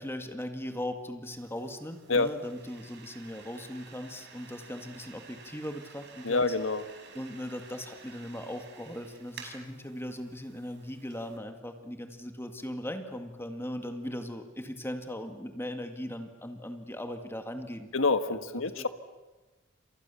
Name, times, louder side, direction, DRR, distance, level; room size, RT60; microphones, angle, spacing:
voice 1, 0.0-6.5 7.1-17.9 18.3-18.9, left 1 dB, 10° left, 6 dB, 1.9 m, -39 dB
sound 1, 1.3-11.4, right 5 dB, 60° right, 5.7 m, -52 dB
voice 2, 6.2-6.8 17.9-18.9, left 3 dB, 70° left, 10 dB, 1.6 m, -27 dB
29.5 x 27.0 x 7.1 m, 1.1 s
head